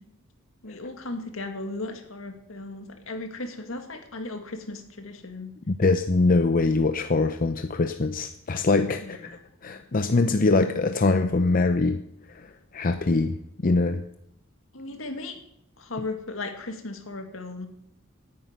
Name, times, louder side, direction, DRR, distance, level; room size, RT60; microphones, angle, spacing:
voice 1, 0.6-5.5 9.0-9.8 10.2-10.5 14.7-15.4 15.8-17.7, left 2 dB, 70° left, 6 dB, 2.0 m, -36 dB
voice 2, 5.7-9.2 9.6-12.0 12.3-13.4 13.6-14.0, left 3 dB, 45° left, 8 dB, 0.6 m, -23 dB
9.7 x 9.6 x 9.4 m, 0.76 s
head